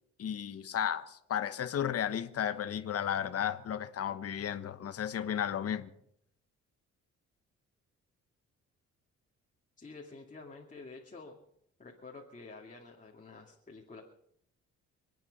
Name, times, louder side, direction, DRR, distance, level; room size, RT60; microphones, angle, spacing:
voice 1, 0.2-5.9, left 9 dB, 50° left, 1.2 m, -34 dB
voice 2, 9.8-11.4 11.8-14.0, left 3 dB, 25° left, 2.5 m, -49 dB
27.0 x 9.3 x 5.4 m
cardioid pair, 90°, 30 cm